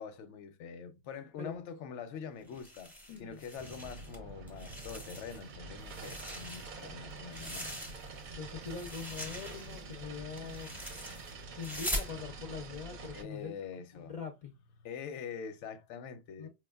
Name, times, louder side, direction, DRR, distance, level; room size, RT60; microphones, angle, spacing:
voice 1, 0.0-7.7 13.1-14.1 14.8-16.5, left 6 dB, 90° left, 0.9 m, -44 dB
sound 1, 2.5-4.2 4.5-5.5 5.8-8.3 8.6-12.1, equal, ahead, 0.7 m, -42 dB
voice 2, 3.1-3.4 8.4-10.7 11.5-13.5 13.9-14.5 16.4-16.5, left 6 dB, 55° left, 0.4 m, -43 dB
sound 2, 3.6-13.2, right 3 dB, 55° right, 0.6 m, -47 dB
4.7 x 2.2 x 2.2 m
omnidirectional pair, 1.2 m